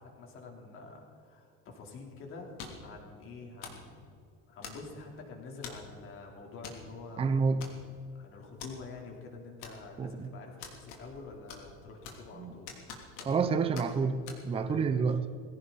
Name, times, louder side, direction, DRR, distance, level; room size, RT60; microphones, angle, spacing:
voice 1, 0.0-2.5 2.8-4.0 4.5-7.4 8.1-12.7 13.2-13.5 14.5-15.1, left 3 dB, 45° left, 3.8 m, -47 dB
sound 1, 2.6-2.9 3.6-3.9 4.6-5.1 5.6-5.9 6.6-6.8 7.1-7.2 7.6-8.1 8.6-8.7 9.6-10.1 10.6-11.2 11.5-12.3 12.7-13.5 13.8-13.9 14.3-14.4, left 6 dB, 75° left, 3.2 m, -45 dB
voice 2, 7.2-7.7 10.0-10.3 12.4-12.5 13.3-15.2, right 5 dB, 20° right, 0.7 m, -29 dB
20.5 x 16.5 x 4.2 m
cardioid pair, 145°, 30 cm